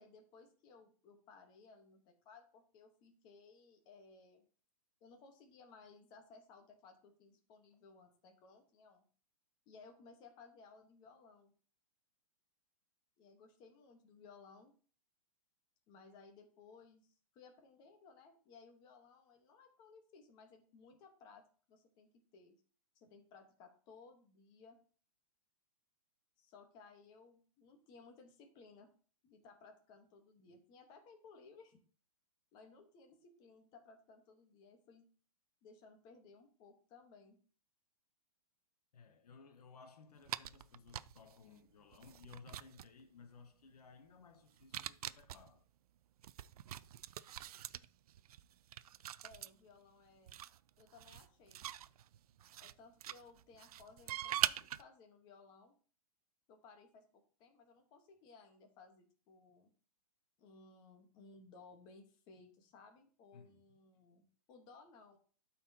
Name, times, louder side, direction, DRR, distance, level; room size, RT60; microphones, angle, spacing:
voice 1, 0.0-4.4 5.0-9.1 9.7-11.5 13.2-14.7 15.9-22.5 22.9-24.8 26.4-28.9 29.2-31.8 32.5-35.0 35.6-37.4 49.2-50.4 50.8-51.7 52.6-55.7 56.5-59.7 60.4-65.2, left 4 dB, 25° left, 1.2 m, -60 dB
voice 2, 38.9-45.7 47.1-47.2 63.3-63.6, left 5 dB, 85° left, 1.1 m, -59 dB
sound 1, 40.2-41.4 41.9-43.0 44.6-45.5 46.2-49.5 50.3-52.7 53.0-54.8, right 11 dB, 75° right, 0.4 m, -42 dB
12.0 x 4.3 x 2.8 m
hypercardioid pair, 165°, 19 cm